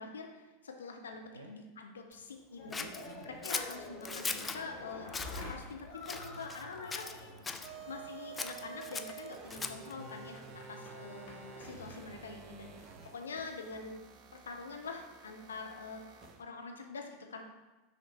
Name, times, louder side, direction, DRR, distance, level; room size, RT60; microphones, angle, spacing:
voice 1, 0.0-2.9 3.2-5.1 5.5-7.2 7.9-14.0 14.5-17.4, left 4 dB, 70° left, 3 dB, 0.7 m, -45 dB
sound 1, 2.6-13.9, left 2 dB, 50° left, 1.3 m, -50 dB
voice 2, 2.6-3.4 6.1-8.0 9.9-11.2 12.9-13.2, right 4 dB, 75° right, 2 dB, 0.7 m, -54 dB
Scissors, 2.7-4.6 5.1-5.4 6.0-6.7 6.9-7.7 8.3-9.9, left 4 dB, 15° left, 0.4 m, -39 dB
sound 2, 7.6-16.4, right 7 dB, 35° right, 0.6 m, -51 dB
6.3 x 3.6 x 4.2 m, 1.1 s
figure-of-eight pair, 85°, 0 cm